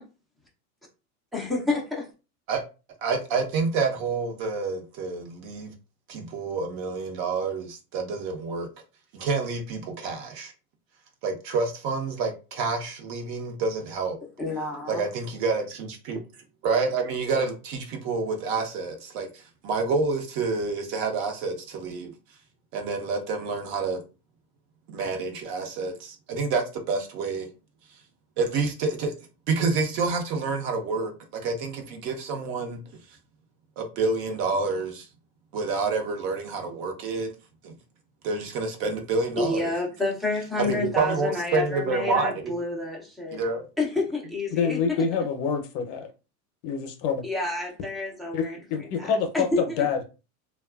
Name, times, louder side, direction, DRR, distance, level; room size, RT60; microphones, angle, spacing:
voice 1, 1.3-2.1 14.4-15.0 39.3-43.4 43.8-45.1 47.2-48.6 49.0-49.8, left 2 dB, ahead, 0.4 m, -29 dB
voice 2, 3.0-5.7 6.1-8.7 9.1-10.5 11.2-14.2 14.9-16.2 16.6-22.1 22.7-24.0 24.9-27.5 28.4-29.1 29.5-32.8 33.8-35.1 35.5-37.3 37.6-37.7 38.2-39.7 40.7-42.5 43.3-43.7, right 4 dB, 45° right, 0.9 m, -28 dB
voice 3, 44.5-46.1 46.6-47.2 48.3-50.0, left 6 dB, 45° left, 0.7 m, -26 dB
2.8 x 2.3 x 2.3 m
supercardioid pair, 130°, 45 cm